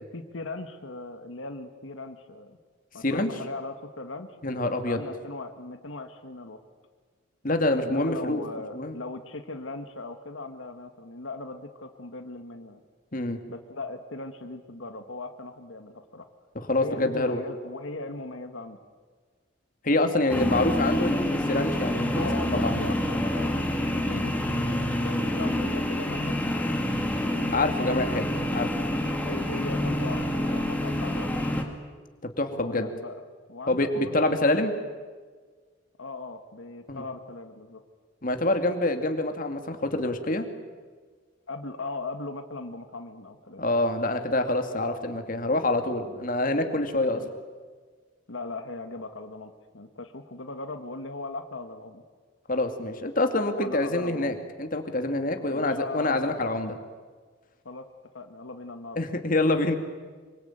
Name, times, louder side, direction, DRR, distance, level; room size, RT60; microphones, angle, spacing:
voice 1, 0.1-2.6 2.9-4.3 4.9-6.6 7.8-12.8 13.5-16.3 16.7-18.8 22.1-23.6 23.9-26.7 29.2-31.5 32.5-33.2 33.5-34.6 36.0-37.8 41.5-43.6 47.1-47.3 48.3-52.0 53.5-54.3 55.5-56.4 57.7-57.9 58.1-59.0, left 2 dB, 85° left, 7 dB, 1.7 m, -38 dB
voice 2, 4.4-5.0 7.4-8.4 8.7-9.0 13.1-13.4 16.6-17.4 19.8-22.9 24.1-24.3 27.5-28.2 28.5-28.9 30.9-31.0 32.2-32.9 33.7-34.7 36.9-37.0 38.2-40.5 43.6-47.2 52.5-56.8 59.0-59.8, left 2 dB, 45° left, 6 dB, 2.3 m, -26 dB
sound 1, 20.3-31.6, left 1 dB, 10° left, 2.5 m, -27 dB
25.5 x 24.0 x 9.0 m, 1.5 s
head